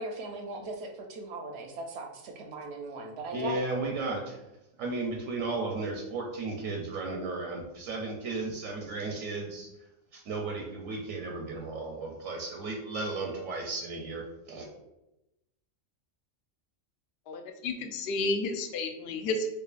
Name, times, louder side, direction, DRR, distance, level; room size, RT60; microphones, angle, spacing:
voice 1, 0.0-3.6, right 2 dB, 65° right, 3 dB, 0.7 m, -39 dB
voice 2, 3.3-4.4 4.8-9.7 10.1-14.7, right 3 dB, 85° right, 1 dB, 1.0 m, -34 dB
voice 3, 17.3-19.5, left 2 dB, 65° left, 5 dB, 0.6 m, -31 dB
4.6 x 2.4 x 2.4 m, 0.91 s
omnidirectional pair, 1.4 m